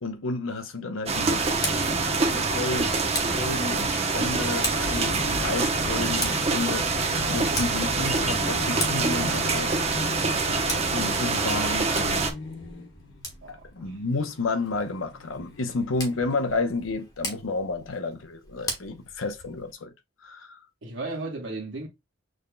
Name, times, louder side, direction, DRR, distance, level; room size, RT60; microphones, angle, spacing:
voice 1, 0.0-1.5 1.7-6.9 7.3-10.1 10.3-12.3 13.5-19.9 20.2-20.6, left 3 dB, 90° left, 0.9 m, -31 dB
sound 1, 1.1-12.3, right 3 dB, 30° right, 0.9 m, -25 dB
Tick, 1.3-19.7, left 1 dB, 20° left, 1.3 m, -40 dB
sound 2, 4.4-16.6, left 3 dB, 65° left, 1.2 m, -40 dB
voice 2, 13.4-14.0 20.8-21.9, right 2 dB, 70° right, 1.2 m, -35 dB
6.3 x 3.5 x 2.2 m
head